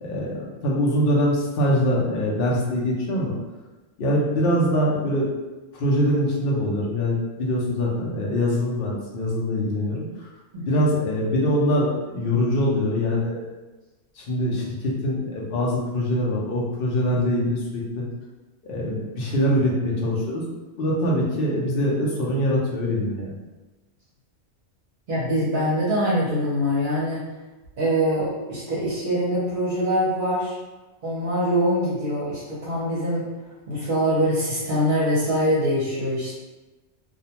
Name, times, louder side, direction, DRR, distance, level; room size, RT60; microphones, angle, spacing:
voice 1, 0.0-3.4 4.0-5.3 5.7-10.0 10.7-13.4 14.2-18.0 18.6-20.4 20.8-23.4, equal, 55° left, -4 dB, 0.8 m, -23 dB
voice 2, 10.5-10.8 25.1-27.2 27.8-30.6 31.0-33.2 33.7-36.3, equal, 50° right, -8 dB, 0.8 m, -23 dB
2.4 x 2.2 x 2.8 m, 1.1 s
omnidirectional pair, 1.3 m